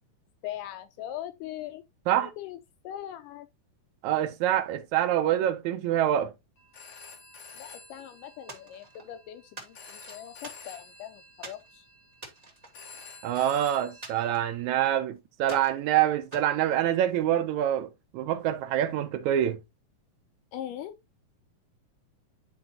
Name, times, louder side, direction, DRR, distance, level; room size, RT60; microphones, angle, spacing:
voice 1, 0.4-1.8 2.2-2.6 2.8-3.5 7.5-11.9 20.5-21.0, left 12 dB, 80° left, 2.2 m, -40 dB
voice 2, 4.0-6.3 13.2-17.9 18.1-19.6, right 11 dB, 75° right, 1.8 m, -26 dB
Telephone, 6.6-14.4, left 4 dB, 45° left, 2.4 m, -50 dB
sound 1, 8.5-9.1 9.6-11.0 11.4-11.7 12.1-13.5 14.0-15.0 15.4-15.8 16.3-17.4, right 3 dB, 50° right, 0.4 m, -46 dB
10.5 x 4.2 x 2.7 m
omnidirectional pair, 3.8 m